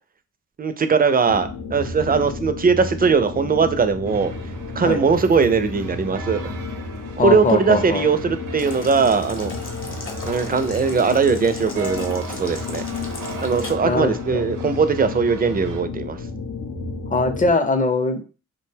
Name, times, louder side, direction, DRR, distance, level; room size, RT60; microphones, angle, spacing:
voice 1, 0.6-4.3 4.8-6.5 7.2-9.5 10.2-12.8 13.4-16.2, right 5 dB, 30° right, 10 dB, 0.4 m, -20 dB
sound 1, 1.2-17.5, left 3 dB, 85° left, 0.7 m, -32 dB
sound 2, 4.0-15.8, right 4 dB, 70° right, 0.6 m, -39 dB
voice 2, 7.2-8.1 13.8-14.4 17.1-18.2, left 2 dB, 25° left, 7 dB, 0.5 m, -21 dB
Boiling, 8.6-13.7, left 3 dB, 40° left, 0.9 m, -37 dB
2.5 x 2.2 x 3.3 m, 0.35 s
cardioid pair, 60°, 32 cm